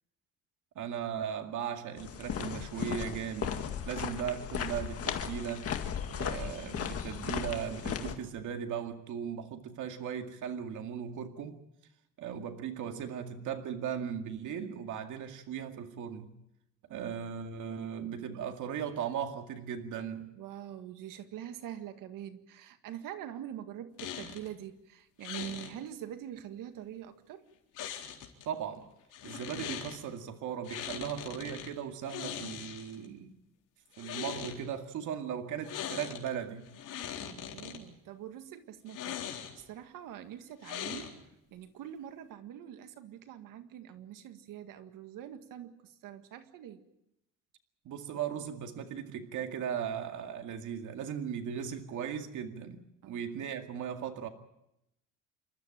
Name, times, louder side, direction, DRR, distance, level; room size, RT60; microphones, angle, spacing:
voice 1, 0.8-5.7 6.1-11.6 12.2-16.3 16.9-20.3 28.4-28.9 29.2-33.3 34.0-36.7 47.8-54.3, right 8 dB, 70° right, 2.2 m, -37 dB
sound 1, 2.0-8.2, left 8 dB, 45° left, 2.0 m, -36 dB
voice 2, 20.4-27.5 37.2-41.2 41.5-46.8 53.0-53.4, right 10 dB, 85° right, 1.9 m, -45 dB
sound 2, 24.0-24.5 25.2-25.7 27.7-28.4 29.1-30.0 30.6-31.7 32.0-33.0 33.9-34.6 35.6-36.3 36.6-37.8 38.9-39.7 40.6-41.3, left 9 dB, 75° left, 4.0 m, -40 dB
28.0 x 13.0 x 9.0 m
cardioid pair, 150°, 32 cm